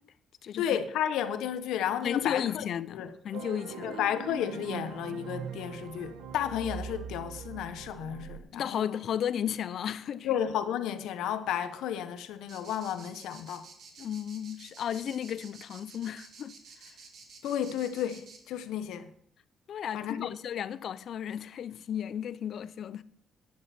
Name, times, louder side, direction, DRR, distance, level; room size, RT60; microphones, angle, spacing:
voice 1, 0.6-2.7 2.9-3.1 3.8-9.0 10.2-13.7 17.4-19.1 19.9-20.4, left 10 dB, 90° left, 0.9 m, -32 dB
voice 2, 2.0-4.0 8.5-10.3 14.0-16.6 19.7-23.0, left 9 dB, 65° left, 0.5 m, -34 dB
sound 1, 3.3-8.4, right 7 dB, 80° right, 1.2 m, -41 dB
sound 2, 12.5-18.4, right 5 dB, 65° right, 2.4 m, -51 dB
11.0 x 9.6 x 4.3 m
cardioid pair, 90°, 0 cm